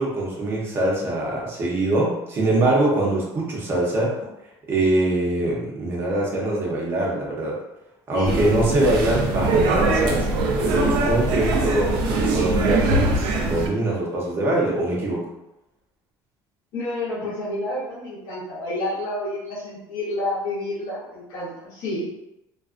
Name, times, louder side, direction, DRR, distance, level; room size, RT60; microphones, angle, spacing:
voice 1, 0.0-4.1 4.7-7.6 8.1-13.0 13.4-15.3, right 1 dB, 25° right, -4 dB, 0.7 m, -23 dB
voice 2, 8.1-8.8 16.7-22.2, left 1 dB, 60° left, -9 dB, 0.8 m, -29 dB
sound 1, 8.2-13.7, right 2 dB, 70° right, 0.4 m, -22 dB
2.4 x 2.2 x 2.4 m, 0.89 s
cardioid pair, 175°, 9 cm